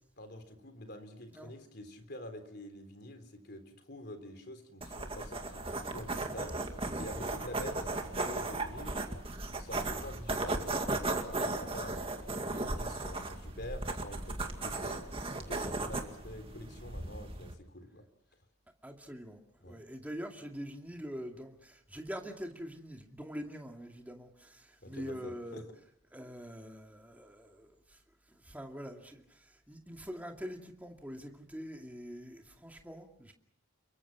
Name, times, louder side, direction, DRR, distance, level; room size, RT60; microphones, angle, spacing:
voice 1, 0.2-6.6 7.0-9.0 9.4-12.0 12.5-15.0 15.4-18.1 19.6-19.8 24.8-25.7, left 1 dB, 50° left, 8 dB, 3.7 m, -47 dB
sound 1, 4.8-17.5, right 2 dB, 25° right, 2.2 m, -36 dB
voice 2, 18.8-25.6 26.1-28.0 28.3-33.3, equal, 10° right, 2 dB, 2.4 m, -44 dB
28.5 x 23.5 x 6.0 m, 0.74 s
head